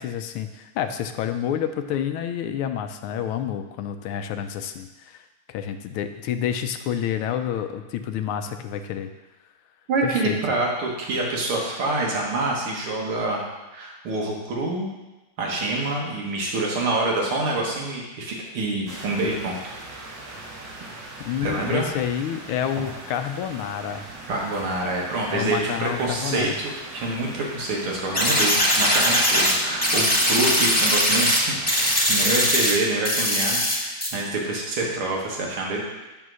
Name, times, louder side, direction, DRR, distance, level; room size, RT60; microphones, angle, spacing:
voice 1, 0.0-9.1 10.0-10.4 21.2-24.0 25.3-26.5, left 9 dB, 85° left, 8 dB, 1.5 m, -29 dB
voice 2, 9.9-13.4 13.7-14.9 15.4-19.6 21.4-21.9 24.3-35.8, right 2 dB, 85° right, -2 dB, 2.2 m, -26 dB
sound 1, 18.9-32.5, right 2 dB, 60° right, 2.0 m, -40 dB
sound 2, 28.1-29.5 29.8-31.4 31.7-32.7 33.1-33.8 34.0-34.1, equal, 5° left, 1.4 m, -20 dB
10.5 x 3.5 x 6.2 m, 1.1 s
omnidirectional pair, 2.3 m